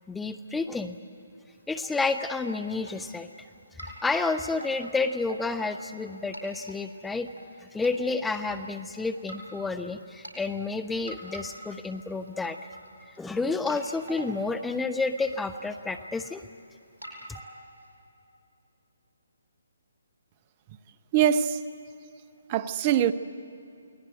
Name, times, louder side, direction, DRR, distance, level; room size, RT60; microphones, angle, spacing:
voice 1, 0.1-1.0 1.7-3.3 3.8-7.3 7.7-12.6 13.2-16.4, left 3 dB, 5° left, 0.6 m, -30 dB
sound 1, 1.5-1.9 2.2-2.5 2.9-3.5 3.8-6.1 6.3-6.8 7.3-7.9 8.3-8.4 9.2-9.6 10.0-10.3 11.1-11.9 12.2-12.9 13.1-13.2 13.7-14.5 14.9-15.0 15.2-16.5 17.0-17.9, right 2 dB, 75° right, 5.6 m, -44 dB
voice 2, 21.1-21.6 22.5-23.1, right 10 dB, 30° right, 0.8 m, -23 dB
29.0 x 19.5 x 9.4 m
figure-of-eight pair, 140°, 0 cm